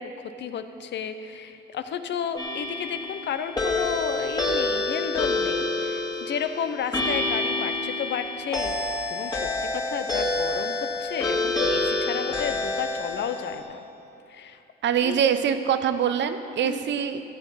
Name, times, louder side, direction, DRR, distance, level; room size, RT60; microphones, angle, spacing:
voice 1, 0.0-13.8 14.3-14.6 15.0-15.2 16.6-16.8, left 7 dB, 60° left, 9 dB, 0.8 m, -32 dB
sound 1, 2.4-13.6, left 2 dB, 20° left, 2.1 m, -27 dB
voice 2, 14.8-17.2, right 8 dB, 65° right, 10 dB, 0.8 m, -24 dB
14.5 x 8.3 x 5.7 m, 2.7 s
cardioid pair, 90°, 20 cm